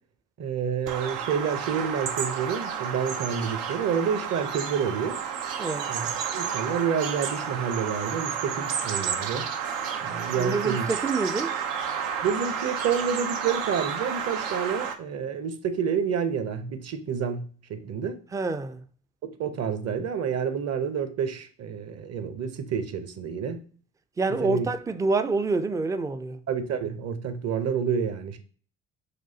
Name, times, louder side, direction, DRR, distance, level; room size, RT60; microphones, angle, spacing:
voice 1, 0.4-5.2 5.9-6.1 6.3-9.5 10.0-10.9 12.2-18.2 19.2-23.6 24.3-24.7 26.5-28.4, right 7 dB, 45° right, 0.7 m, -29 dB
Bird vocalization bird call bird song, 0.9-14.9, right 7 dB, 85° right, 0.6 m, -31 dB
voice 2, 10.3-11.6 18.3-18.8 24.2-26.4, right 3 dB, 10° right, 0.3 m, -27 dB
6.1 x 2.4 x 2.7 m
hypercardioid pair, 55°, 37 cm